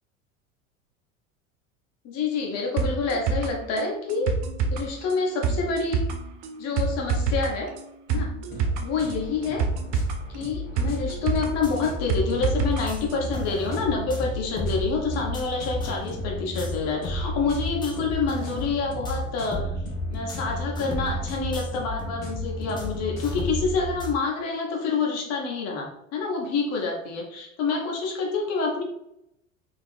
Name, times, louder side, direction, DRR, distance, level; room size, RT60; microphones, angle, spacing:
voice 1, 2.0-4.4 4.7-6.1 6.6-7.7 8.1-8.3 8.8-9.6 10.3-19.7 20.1-28.8, left 4 dB, 40° left, 0 dB, 1.0 m, -27 dB
sound 1, 2.8-12.8 13.1-13.2, right 4 dB, 40° right, 0.5 m, -27 dB
sound 2, 8.5-23.5, left 3 dB, 85° left, 0.9 m, -37 dB
sound 3, 11.6-24.1, right 1 dB, 10° left, 0.7 m, -33 dB
3.7 x 2.9 x 2.5 m, 0.81 s
figure-of-eight pair, 70°, 39 cm